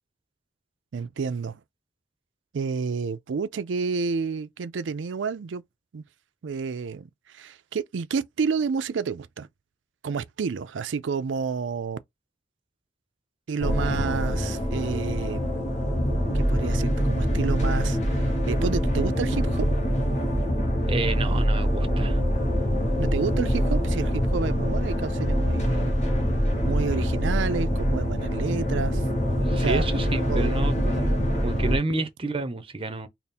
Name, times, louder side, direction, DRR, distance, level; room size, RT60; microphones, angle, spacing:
voice 1, 0.9-1.6 2.5-5.6 5.9-6.0 6.4-9.5 10.0-12.0 13.5-15.7 16.3-19.7 23.0-26.0 26.6-29.1 29.6-30.6, right 5 dB, 85° right, 0.4 m, -30 dB
sound 1, 13.6-31.8, equal, 40° left, 1.0 m, -24 dB
voice 2, 13.8-14.2 20.9-22.2 29.4-31.2 31.4-33.1, right 2 dB, 30° right, 0.7 m, -30 dB
3.5 x 2.1 x 4.1 m
head